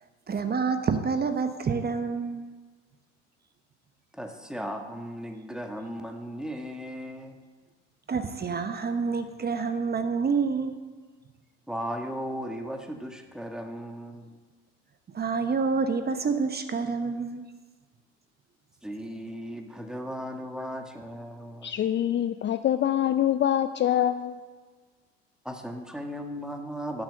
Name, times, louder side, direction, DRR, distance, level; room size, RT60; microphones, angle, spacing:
voice 1, 0.3-2.5 8.1-10.7 15.1-17.4, right 5 dB, 25° right, 8 dB, 1.1 m, -28 dB
voice 2, 4.1-7.4 11.7-14.4 18.8-21.7 25.4-27.0, equal, ahead, 4 dB, 1.6 m, -36 dB
voice 3, 21.6-24.4, left 11 dB, 30° left, 10 dB, 0.5 m, -25 dB
11.5 x 7.6 x 7.6 m, 1.4 s
hypercardioid pair, 75°, 35 cm